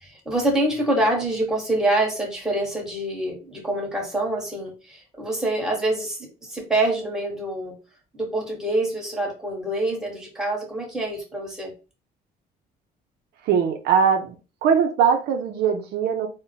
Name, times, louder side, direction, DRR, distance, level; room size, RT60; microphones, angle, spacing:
voice 1, 0.0-7.7 8.1-11.7, right 1 dB, 5° right, 1.3 m, -26 dB
voice 2, 13.5-14.3 14.6-16.3, right 7 dB, 75° right, 0.6 m, -21 dB
3.9 x 2.1 x 2.7 m
cardioid pair, 110°, 17 cm